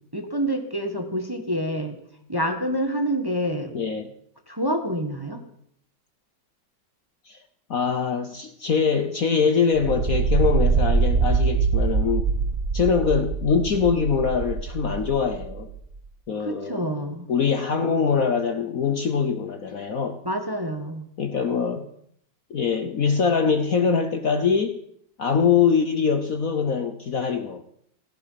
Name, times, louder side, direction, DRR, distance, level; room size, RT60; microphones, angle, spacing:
voice 1, 0.1-1.9 2.3-3.7 4.5-5.4 16.4-17.3 20.2-21.1, equal, 15° right, 5 dB, 1.4 m, -27 dB
voice 2, 3.7-4.1 7.3-7.4 7.7-12.2 12.7-15.7 16.3-16.9 17.3-20.2 21.2-21.9 22.5-24.8 25.2-27.6, left 6 dB, 55° left, 8 dB, 1.2 m, -23 dB
sound 1, 9.7-15.8, right 5 dB, 45° right, 1.0 m, -24 dB
16.0 x 14.5 x 5.8 m, 0.67 s
omnidirectional pair, 2.1 m